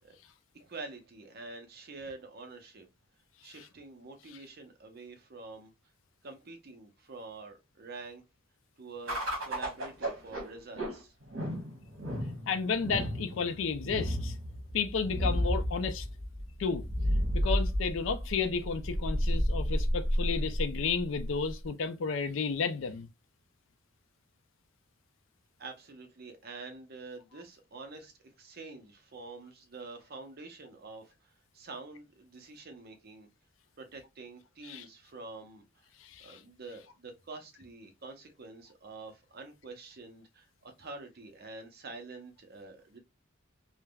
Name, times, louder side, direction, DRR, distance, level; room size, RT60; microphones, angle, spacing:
voice 1, 0.5-2.9 3.4-5.7 6.2-8.2 8.8-11.1 25.6-33.3 33.8-35.9 36.2-43.0, right 3 dB, 50° right, 0.6 m, -47 dB
sound 1, 9.1-21.7, equal, 70° right, 1.2 m, -32 dB
voice 2, 12.5-14.3 14.7-16.1 16.6-16.8 17.3-23.1 34.6-34.8 36.0-36.4, left 5 dB, 65° left, 0.4 m, -32 dB
3.3 x 2.1 x 2.2 m
head